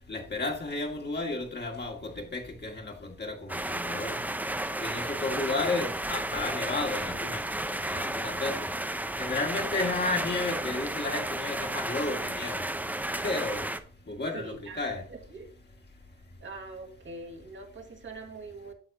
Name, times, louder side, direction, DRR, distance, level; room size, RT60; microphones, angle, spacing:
voice 1, 0.1-4.2 4.8-7.4 7.9-8.6 9.2-12.6 13.2-13.6 14.1-15.0, left 3 dB, 35° left, 2.1 m, -32 dB
sound 1, 3.5-13.8, right 1 dB, 5° right, 0.6 m, -33 dB
voice 2, 14.3-15.5 16.4-18.7, right 3 dB, 40° right, 1.7 m, -43 dB
9.8 x 6.4 x 2.7 m
cardioid pair, 90°, 30 cm